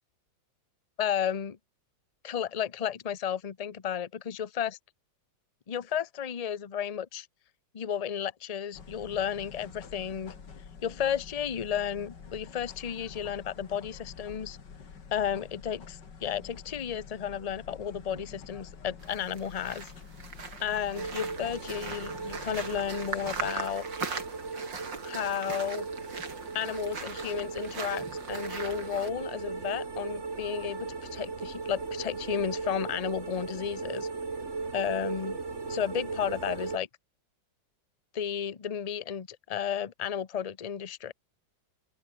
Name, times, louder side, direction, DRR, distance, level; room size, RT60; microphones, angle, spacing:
voice 1, 1.0-1.6 2.2-4.7 5.7-7.3 7.7-10.3 10.8-14.6 15.1-19.9 20.6-23.8 25.0-25.9 26.5-34.1 34.7-35.4 35.7-36.9 38.1-41.1, left 8 dB, 35° left, 0.6 m, -33 dB
sound 1, 8.7-23.5, left 6 dB, 70° left, 2.9 m, -48 dB
sound 2, 19.0-29.1, right 5 dB, 80° right, 3.6 m, -40 dB
sound 3, 20.9-36.8, right 4 dB, 40° right, 2.7 m, -37 dB
open air
omnidirectional pair, 2.0 m